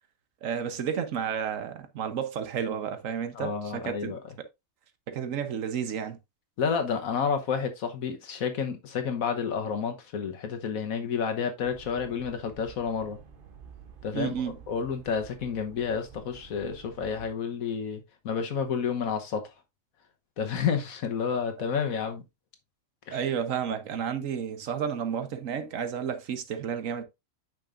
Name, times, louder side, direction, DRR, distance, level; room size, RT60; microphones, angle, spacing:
voice 1, 0.4-4.1 5.1-6.2 14.1-14.6 23.1-27.0, right 8 dB, 70° right, 1.2 m, -31 dB
voice 2, 3.3-4.2 6.6-13.2 14.0-14.3 14.7-19.4 20.4-22.2 23.1-23.2, left 6 dB, 85° left, 1.5 m, -30 dB
sound 1, 11.6-17.3, right 6 dB, 45° right, 1.0 m, -50 dB
8.5 x 6.0 x 2.5 m
omnidirectional pair, 1.4 m